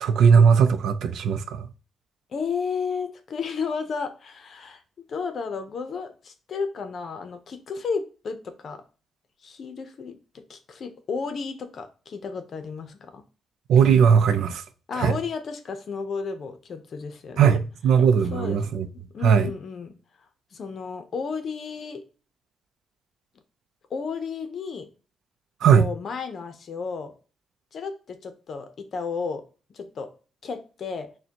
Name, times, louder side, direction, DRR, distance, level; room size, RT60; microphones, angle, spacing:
voice 1, 0.0-1.7 13.7-14.6 15.0-15.1 17.4-18.9 19.2-19.5 25.6-25.8, right 7 dB, 90° right, 0.5 m, -18 dB
voice 2, 2.3-4.8 5.1-8.8 9.4-10.2 10.5-13.2 14.9-17.6 18.3-18.6 18.9-19.9 20.5-22.0 23.9-24.9 25.7-27.1 27.7-29.4 29.7-30.1 30.4-31.1, left 5 dB, 45° left, 0.6 m, -33 dB
6.4 x 2.2 x 2.8 m
wide cardioid pair, 175°, 0 cm